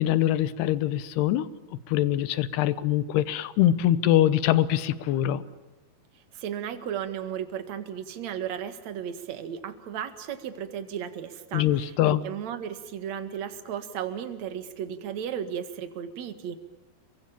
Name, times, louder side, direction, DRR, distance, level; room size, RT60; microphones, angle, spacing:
voice 1, 0.0-5.4 11.5-12.2, left 12 dB, 85° left, 15 dB, 3.1 m, -24 dB
voice 2, 6.3-16.6, right 9 dB, 50° right, 9 dB, 2.6 m, -35 dB
30.0 x 23.0 x 7.3 m, 1.1 s
omnidirectional pair, 4.6 m